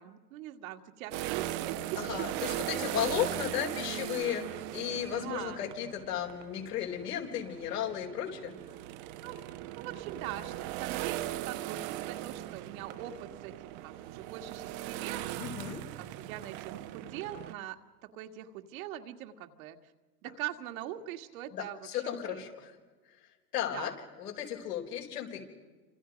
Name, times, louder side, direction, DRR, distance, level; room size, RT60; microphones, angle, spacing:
voice 1, 0.0-3.1 3.4-3.6 5.0-5.6 9.2-9.4 9.7-10.5 10.8-15.6 16.0-17.8 18.1-19.8 20.2-22.5 23.6-24.0, right 12 dB, 60° right, 6 dB, 1.9 m, -42 dB
sound 1, 1.1-17.5, right 14 dB, 40° right, 1.0 m, -39 dB
voice 2, 2.0-8.5 15.4-15.8 21.5-22.7 23.5-23.9 24.2-25.4, left 10 dB, 75° left, 2 dB, 4.9 m, -35 dB
29.5 x 26.5 x 5.2 m, 1.3 s
hypercardioid pair, 125°, 48 cm